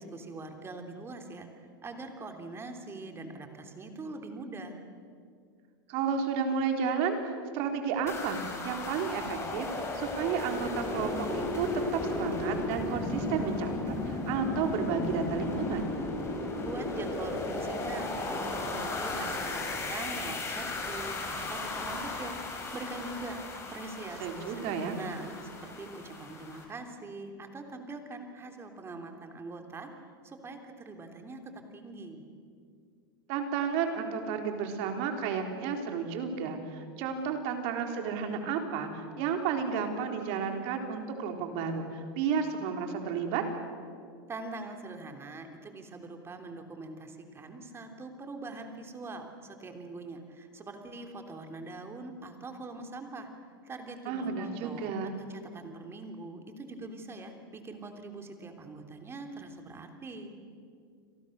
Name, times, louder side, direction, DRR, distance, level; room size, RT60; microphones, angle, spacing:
voice 1, 0.0-4.8 16.6-29.9 30.2-32.2 44.3-53.3 53.6-60.3, right 3 dB, 20° right, 5 dB, 3.3 m, -43 dB
voice 2, 5.9-11.7 12.1-15.9 24.2-25.0 33.3-43.4 54.1-55.2, right 6 dB, 55° right, 4 dB, 3.9 m, -32 dB
sound 1, 8.1-26.6, left 2 dB, 20° left, 5.5 m, -35 dB
30.0 x 23.0 x 6.7 m, 2.3 s
supercardioid pair, 125°, 12 cm